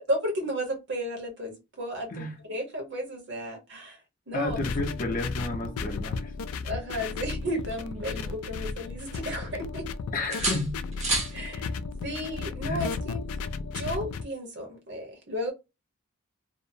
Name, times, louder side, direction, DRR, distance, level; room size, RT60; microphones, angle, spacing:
voice 1, 0.0-4.0 4.3-4.6 6.6-9.8 11.3-11.7 12.0-13.2 13.7-15.5, equal, 50° right, 0.9 m, -33 dB
voice 2, 4.3-6.3 10.1-10.7 12.6-12.9, left 2 dB, 40° left, 0.6 m, -31 dB
sound 1, 4.5-14.2, left 4 dB, 80° left, 0.3 m, -34 dB
sound 2, 7.2-8.7 9.1-9.9 10.3-11.4 13.2-13.4, right 2 dB, 30° right, 0.7 m, -33 dB
2.6 x 2.0 x 2.6 m
head